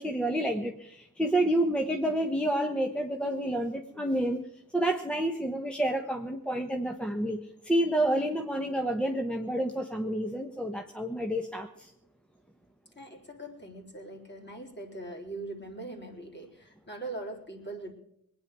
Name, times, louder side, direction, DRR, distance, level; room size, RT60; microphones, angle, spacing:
voice 1, 0.0-4.4 4.7-11.9, right 1 dB, 5° left, 4 dB, 1.2 m, -29 dB
voice 2, 13.0-17.9, right 2 dB, 30° left, 1 dB, 3.9 m, -41 dB
21.0 x 9.7 x 6.1 m, 0.79 s
cardioid pair, 80°, 36 cm